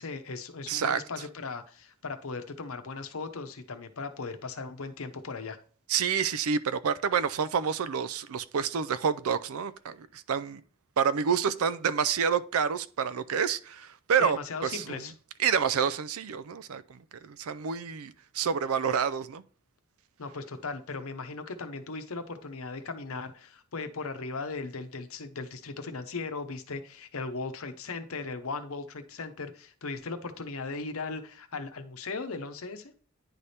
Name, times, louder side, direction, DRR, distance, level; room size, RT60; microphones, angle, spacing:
voice 1, 0.0-5.6 14.2-15.1 20.2-32.9, left 4 dB, 80° left, 0.8 m, -38 dB
voice 2, 0.7-1.0 5.9-10.6 11.0-15.0 15.4-19.4, right 7 dB, 85° right, 0.5 m, -28 dB
9.8 x 3.4 x 4.2 m
head